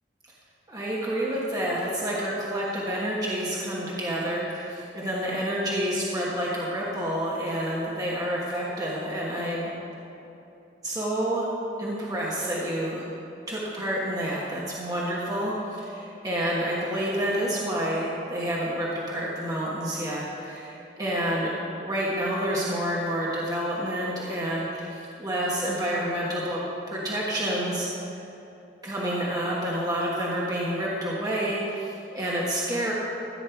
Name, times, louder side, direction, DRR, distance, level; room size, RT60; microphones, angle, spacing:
voice 1, 0.7-9.7 10.8-11.5 11.8-13.1 13.5-21.5 21.8-26.6 26.9-27.9 28.8-32.9, equal, 20° right, -6 dB, 1.4 m, -29 dB
14.0 x 8.8 x 4.6 m, 2.9 s
head